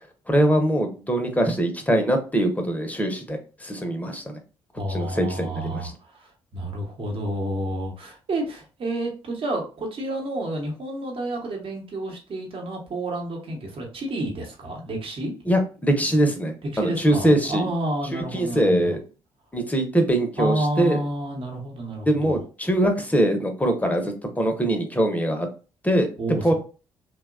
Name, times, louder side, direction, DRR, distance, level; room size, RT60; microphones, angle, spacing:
voice 1, 0.3-4.4 4.9-5.9 15.5-17.7 18.1-19.0 19.5-21.0 22.1-25.5 25.8-26.1 26.4-26.5, right 1 dB, 15° left, 5 dB, 0.7 m, -22 dB
voice 2, 4.8-15.3 16.7-18.9 20.4-22.4 26.2-26.5, right 1 dB, 50° right, 1 dB, 1.0 m, -30 dB
2.8 x 2.2 x 2.4 m, 0.34 s
hypercardioid pair, 50°, 12 cm